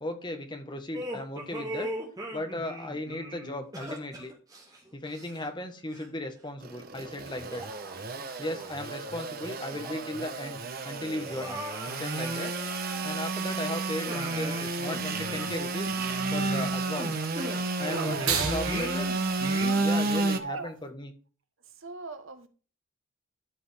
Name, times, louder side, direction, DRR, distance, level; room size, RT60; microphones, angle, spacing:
voice 1, 0.0-1.9 2.3-4.3 4.9-7.6 8.4-11.6 11.9-12.5 13.0-16.0 16.3-17.2 17.8-19.1 19.7-21.1, left 1 dB, 20° left, 1.3 m, -36 dB
sound 1, 0.9-5.6 5.9-6.1 6.8-6.9 7.5-8.8 9.2-9.3 9.7-10.3 10.5-10.6 11.1-13.6 14.1-18.3 18.6-20.2, right 1 dB, 15° right, 1.9 m, -40 dB
Engine / Sawing, 6.6-20.4, right 3 dB, 45° right, 1.0 m, -31 dB
voice 2, 17.8-18.7 19.6-19.8 20.3-20.7 21.8-22.5, right 4 dB, 75° right, 1.3 m, -38 dB
sound 2, 20.2-20.9, right 6 dB, 90° right, 2.6 m, -41 dB
13.5 x 5.2 x 3.5 m
head